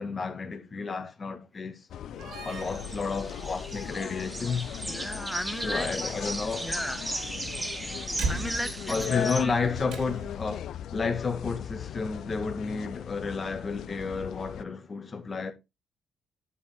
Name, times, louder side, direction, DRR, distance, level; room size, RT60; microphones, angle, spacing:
voice 1, 0.0-1.9 2.4-4.7 5.6-6.7 8.9-15.5, left 4 dB, 35° left, 2.0 m, -32 dB
sound 1, 1.9-14.6, left 10 dB, 70° left, 0.5 m, -38 dB
Slam, 2.1-10.5, right 3 dB, 80° right, 2.7 m, -40 dB
sound 2, 2.5-9.4, right 1 dB, 15° right, 2.3 m, -37 dB
voice 2, 4.8-5.9 6.6-7.0 8.3-9.6, left 1 dB, 5° left, 0.6 m, -35 dB
11.0 x 5.4 x 3.6 m
cardioid pair, 90°, 0 cm